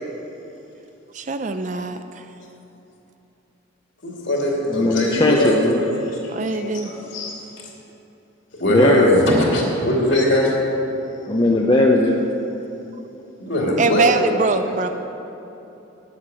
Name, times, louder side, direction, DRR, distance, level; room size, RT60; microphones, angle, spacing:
voice 1, 1.1-2.2 6.3-6.9 13.8-14.9, right 4 dB, 35° right, 9 dB, 0.4 m, -22 dB
voice 2, 4.0-7.6 8.6-10.5 13.4-14.1 14.8-14.9, left 1 dB, 60° left, -3 dB, 2.7 m, -21 dB
voice 3, 4.7-5.8 8.7-9.1 11.3-12.2, left 2 dB, 20° left, -1 dB, 0.6 m, -17 dB
10.0 x 8.5 x 7.6 m, 3.0 s
head